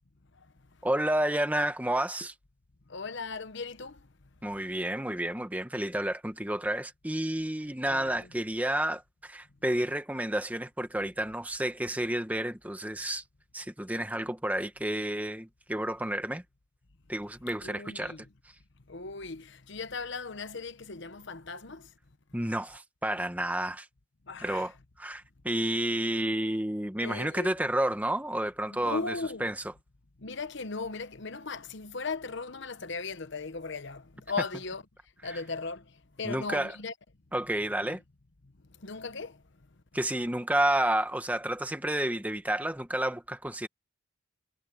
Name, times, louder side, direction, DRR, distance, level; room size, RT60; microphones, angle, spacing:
voice 1, 0.8-2.3 4.4-13.2 13.5-16.4 17.1-18.2 22.3-23.9 24.4-24.7 25.0-29.6 35.3-35.4 36.2-36.8 37.3-38.0 39.9-43.7, right 1 dB, 5° right, 1.1 m, -30 dB
voice 2, 2.9-4.1 7.9-8.3 17.6-18.3 18.9-21.9 24.3-24.7 27.0-27.5 28.7-29.5 30.2-34.8 35.2-36.9 37.8-38.0 38.4-39.4, left 4 dB, 60° left, 1.1 m, -38 dB
head